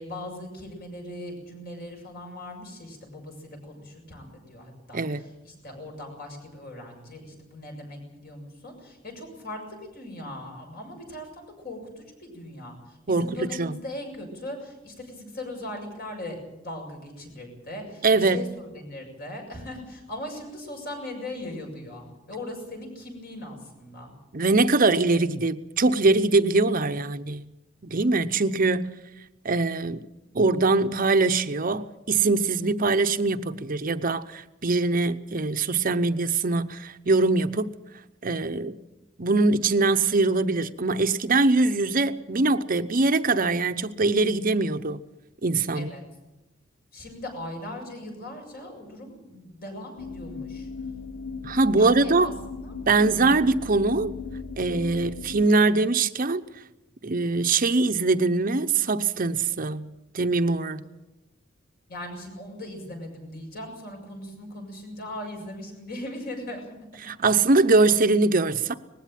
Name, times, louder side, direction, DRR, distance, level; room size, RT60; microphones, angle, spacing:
voice 1, 0.0-16.4 16.6-24.1 45.7-46.0 46.9-50.7 51.8-52.8 53.1-53.4 61.9-66.7, left 1 dB, 55° left, 7.1 m, -39 dB
voice 2, 13.1-13.7 18.0-18.5 24.3-27.5 27.8-29.0 29.4-30.1 30.3-37.7 38.2-38.8 39.2-45.0 45.4-45.9 51.4-52.3 52.9-54.1 54.6-56.4 57.0-59.9 60.1-60.8 67.0-68.7, right 3 dB, 45° right, 0.8 m, -22 dB
sound 1, 50.0-55.5, left 4 dB, 70° left, 0.9 m, -37 dB
20.0 x 15.5 x 9.3 m
head